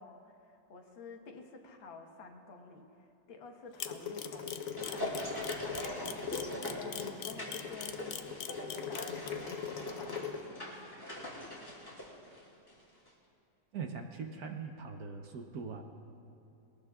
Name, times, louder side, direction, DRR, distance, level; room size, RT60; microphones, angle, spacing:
voice 1, 0.0-6.2 6.8-11.1, left 4 dB, 85° left, 2 dB, 2.0 m, -51 dB
sound 1, 3.7-10.4, left 7 dB, 55° left, 1.1 m, -41 dB
Camera, 3.8-9.3, left 10 dB, 70° left, 0.9 m, -40 dB
sound 2, 4.2-12.8 13.1-13.2, left 1 dB, 10° left, 2.4 m, -43 dB
voice 2, 13.7-15.8, right 5 dB, 60° right, 4 dB, 1.1 m, -41 dB
21.0 x 19.0 x 2.4 m, 2.8 s
omnidirectional pair, 2.1 m